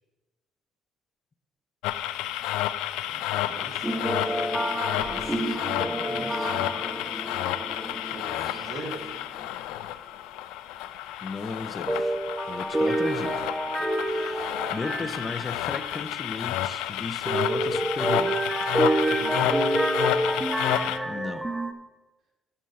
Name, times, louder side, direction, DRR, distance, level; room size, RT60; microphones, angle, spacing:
sound 1, 1.8-21.0, left 13 dB, 85° left, 0.4 m, -31 dB
voice 1, 3.1-3.9 5.0-6.7 8.1-9.1 14.9-15.1 19.0-19.7, right 2 dB, 65° right, -2 dB, 3.1 m, -41 dB
sound 2, 3.8-9.2 9.4-9.5 11.9-16.0 17.3-21.7, right 1 dB, 15° right, 0.9 m, -28 dB
voice 2, 11.2-12.2 12.5-13.5 14.1-18.4 21.0-21.5, left 4 dB, 30° left, 10 dB, 0.6 m, -35 dB
9.2 x 5.5 x 5.7 m, 1.1 s
supercardioid pair, 80°, 0 cm